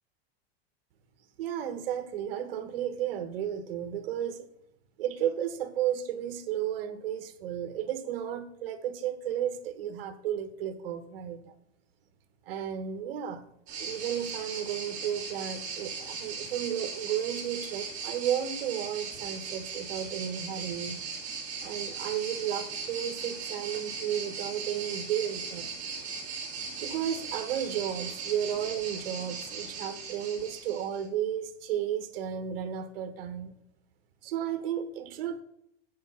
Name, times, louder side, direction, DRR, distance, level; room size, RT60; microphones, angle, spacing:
voice 1, 1.4-4.5 5.0-11.5 12.5-13.4 13.8-21.0 21.6-25.7 26.8-33.5 34.2-35.4, right 10 dB, 65° right, 9 dB, 1.4 m, -33 dB
sound 1, 13.7-31.0, right 5 dB, 25° right, 2.8 m, -38 dB
9.4 x 5.0 x 5.6 m, 0.75 s
supercardioid pair, 165°, 31 cm